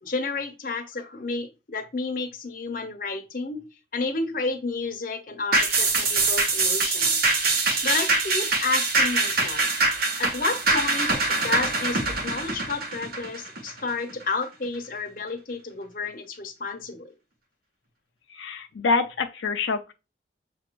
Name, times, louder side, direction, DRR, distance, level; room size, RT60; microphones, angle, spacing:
voice 1, 0.0-3.6 3.9-7.2 7.8-9.7 10.2-11.1 11.4-17.1, left 3 dB, 45° left, 0.8 m, -31 dB
sound 1, 5.5-14.2 14.6-14.7, right 3 dB, 55° right, 0.9 m, -24 dB
voice 2, 18.3-19.9, left 4 dB, 90° left, 0.5 m, -26 dB
6.9 x 2.5 x 3.1 m
head